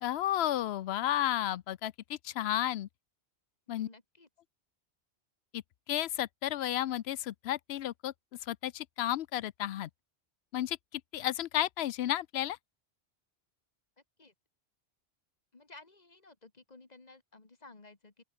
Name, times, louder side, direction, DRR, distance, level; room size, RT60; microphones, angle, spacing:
voice 1, 0.0-2.9 3.7-3.9 5.5-8.1 8.4-9.9 10.5-12.6, left 12 dB, 70° left, 0.8 m, -32 dB
voice 2, 3.7-4.3 14.2-14.3 15.5-18.2, left 3 dB, 40° left, 1.9 m, -55 dB
open air
omnidirectional pair, 1.1 m